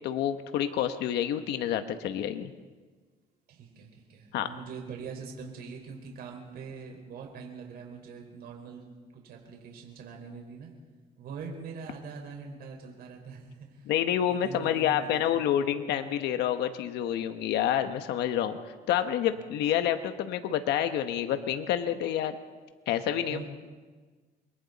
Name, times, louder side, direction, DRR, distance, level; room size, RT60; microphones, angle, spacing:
voice 1, 0.0-2.5 4.3-4.5 13.9-22.4 22.9-23.4, left 10 dB, 80° left, 8 dB, 1.1 m, -28 dB
voice 2, 3.5-8.8 9.1-10.7 11.2-13.9 14.3-15.6 15.9-16.0 19.3-19.4 23.3-23.4, right 5 dB, 65° right, 1 dB, 4.7 m, -43 dB
28.5 x 22.5 x 4.1 m, 1.4 s
cardioid pair, 110°, 17 cm